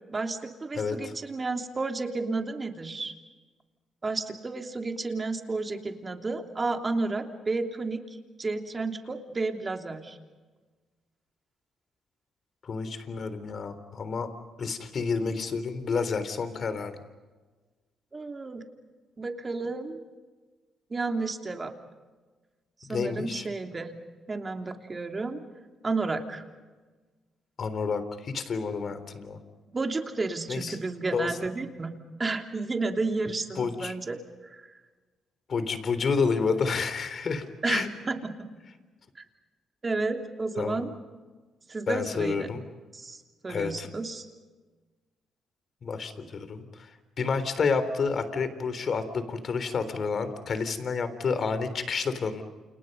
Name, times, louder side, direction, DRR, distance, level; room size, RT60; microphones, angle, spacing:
voice 1, 0.1-3.1 4.0-8.0 8.4-10.2 18.1-18.6 19.2-20.0 20.9-21.7 22.9-24.0 24.3-25.4 25.8-26.4 29.7-34.2 37.6-38.5 39.8-40.9 41.7-42.5 42.9-44.3, right 3 dB, 30° right, 4 dB, 3.1 m, -31 dB
voice 2, 0.8-1.1 12.6-14.3 14.6-16.9 22.9-23.5 27.6-29.4 30.5-30.8 31.1-31.3 33.6-33.9 35.5-37.9 40.6-40.8 41.9-42.6 43.5-43.9 45.8-46.9 47.2-52.4, left 5 dB, 50° left, 11 dB, 3.6 m, -29 dB
29.0 x 29.0 x 5.5 m, 1.3 s
cardioid pair, 90°, 0 cm